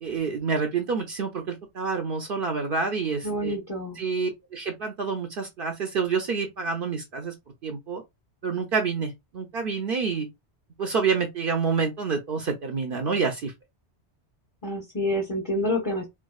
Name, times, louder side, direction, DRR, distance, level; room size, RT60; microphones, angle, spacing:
voice 1, 0.0-3.6 4.0-7.3 7.6-8.0 8.4-10.3 10.8-13.5, right 5 dB, 60° right, 0.7 m, -28 dB
voice 2, 3.2-4.0 14.6-16.1, left 1 dB, 20° left, 0.8 m, -28 dB
4.6 x 2.3 x 2.3 m
omnidirectional pair, 1.1 m